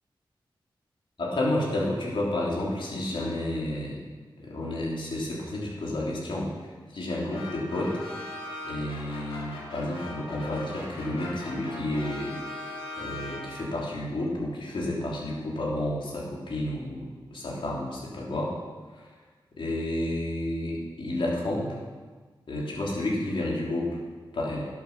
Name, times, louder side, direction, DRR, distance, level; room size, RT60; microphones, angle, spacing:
voice 1, 1.2-4.0 4.4-6.5 6.9-7.9 8.6-12.3 13.0-18.5 18.9-19.1 19.6-21.7 22.5-24.0 24.3-24.7, left 1 dB, 70° left, -4 dB, 3.3 m, -30 dB
sound 1, 7.3-13.8, left 2 dB, 85° left, 2.7 m, -40 dB
11.5 x 7.3 x 6.1 m, 1.4 s
cardioid pair, 55°, 9 cm